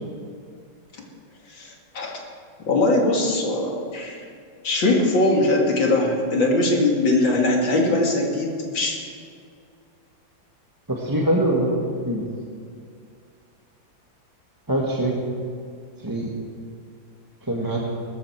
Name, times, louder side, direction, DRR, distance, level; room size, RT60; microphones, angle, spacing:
voice 1, 1.5-2.2 2.7-4.2 4.6-9.0, left 2 dB, 75° left, 0 dB, 3.0 m, -21 dB
voice 2, 10.9-12.3 14.7-15.2 16.0-16.3 17.5-17.9, right 1 dB, 10° right, -2 dB, 1.4 m, -23 dB
19.0 x 14.0 x 4.6 m, 2.3 s
omnidirectional pair, 2.1 m